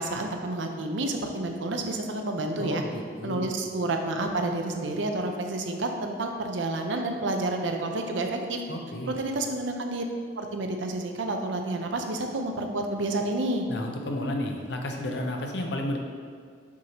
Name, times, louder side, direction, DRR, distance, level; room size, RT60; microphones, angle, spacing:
voice 1, 0.0-2.8 3.2-8.6 9.1-10.0 10.4-13.7, right 2 dB, 70° right, 4 dB, 0.6 m, -29 dB
voice 2, 2.6-3.6 8.7-9.2 13.7-16.0, left 1 dB, 60° left, 2 dB, 0.7 m, -32 dB
6.1 x 5.6 x 2.9 m, 2.1 s
head